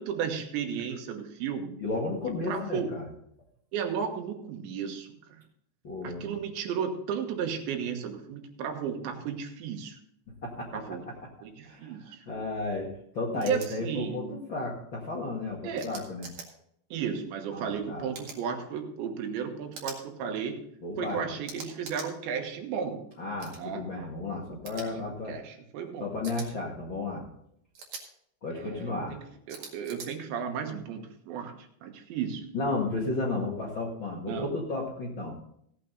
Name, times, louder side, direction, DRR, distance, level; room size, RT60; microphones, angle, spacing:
voice 1, 0.0-1.8 2.4-2.9 3.7-5.4 6.0-10.0 10.7-11.0 11.4-12.2 13.4-14.4 15.6-15.9 16.9-20.6 21.0-23.0 23.6-24.1 24.8-24.9 25.3-26.1 28.5-29.2 29.5-32.5 34.3-34.5, right 7 dB, 85° right, 4 dB, 3.6 m, -34 dB
voice 2, 1.8-3.0 5.8-6.4 10.4-10.8 11.6-12.9 13.1-16.3 17.5-18.1 20.8-21.2 23.2-25.4 26.0-27.2 28.4-29.1 32.5-35.3, left 2 dB, 50° left, -3 dB, 1.5 m, -33 dB
sound 1, 13.4-13.7 15.8-16.5 18.1-18.4 19.7-20.0 21.5-22.1 23.4-23.6 24.7-24.9 26.2-26.5 27.7-28.0 29.5-30.1, right 5 dB, 55° right, 3.0 m, -42 dB
16.5 x 8.5 x 3.9 m, 0.71 s
omnidirectional pair, 5.0 m